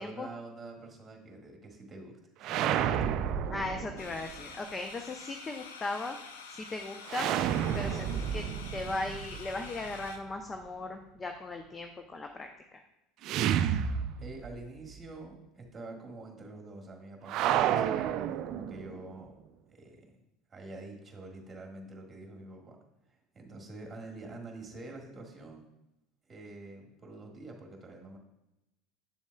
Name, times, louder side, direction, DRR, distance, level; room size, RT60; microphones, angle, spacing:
voice 1, 0.0-3.5 14.2-19.3 19.7-20.2 20.5-22.8 23.1-25.7 26.3-28.2, right 2 dB, 25° right, 1 dB, 1.7 m, -46 dB
sound 1, 2.4-4.4 7.1-10.1 13.2-14.6 14.9-15.0 17.3-19.0, right 9 dB, 55° right, 0.3 m, -31 dB
voice 2, 3.5-6.2 6.5-7.3 7.7-8.5 8.7-12.8, left 2 dB, 25° left, 5 dB, 0.6 m, -38 dB
sound 2, 4.0-10.2, left 5 dB, 80° left, 0.6 m, -47 dB
7.7 x 7.0 x 2.3 m, 0.90 s
hypercardioid pair, 80°, 0 cm